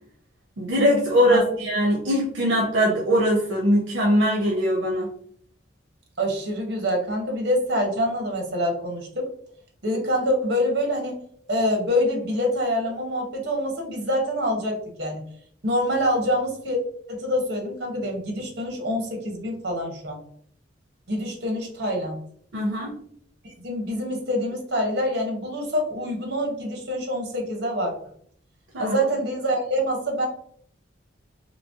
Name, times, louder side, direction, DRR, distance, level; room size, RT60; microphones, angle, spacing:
voice 1, 0.6-5.1 22.5-22.9 28.7-29.0, equal, 80° right, -1 dB, 0.7 m, -21 dB
voice 2, 6.2-9.2 9.8-11.2 11.5-15.2 15.6-16.8 17.1-20.2 21.1-22.2 23.4-27.9 28.8-30.3, equal, 60° right, 2 dB, 1.0 m, -26 dB
3.0 x 3.0 x 2.7 m, 0.62 s
head